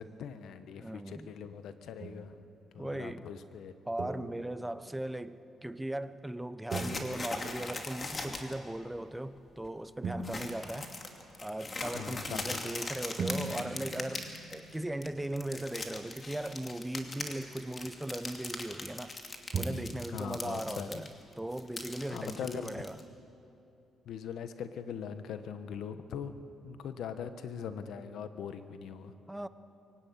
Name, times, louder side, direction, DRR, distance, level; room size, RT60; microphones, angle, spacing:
voice 1, 0.0-2.3 2.7-3.7 11.8-12.7 20.1-20.9 22.1-22.7 24.1-29.1, left 7 dB, 75° left, 1.3 m, -41 dB
voice 2, 0.8-1.3 2.8-3.3 3.9-10.9 11.4-19.2 19.5-21.1 21.4-23.0 29.3-29.5, right 1 dB, 10° right, 0.8 m, -38 dB
sound 1, 2.0-2.4 3.3-3.4 4.0-4.7 6.7-8.9 10.0-11.9 13.2-18.4 18.7-18.9 19.5-19.9 20.2-20.3, right 4 dB, 45° right, 5.0 m, -42 dB
sound 2, 6.7-8.5 8.9-9.0 9.4-9.7 10.2-14.8 15.0-21.1 21.3-23.0, left 3 dB, 30° left, 2.6 m, -40 dB
23.0 x 17.0 x 9.5 m
cardioid pair, 90°, 0 cm